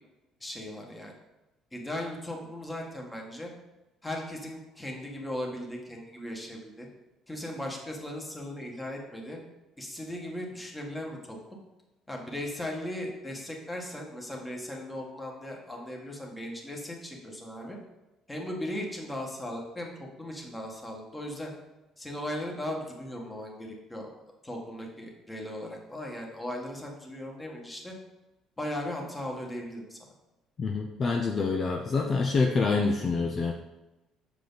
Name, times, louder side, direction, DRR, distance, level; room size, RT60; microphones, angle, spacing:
voice 1, 0.4-1.1 1.7-3.5 4.0-6.9 7.3-9.4 9.8-11.4 12.1-17.8 18.3-21.5 22.0-24.1 24.4-27.9 28.6-30.0, left 1 dB, 15° left, 0 dB, 1.7 m, -37 dB
voice 2, 30.6-33.5, left 4 dB, 40° left, 2 dB, 0.6 m, -26 dB
6.8 x 4.9 x 4.0 m, 1.0 s
supercardioid pair, 85°, 0 cm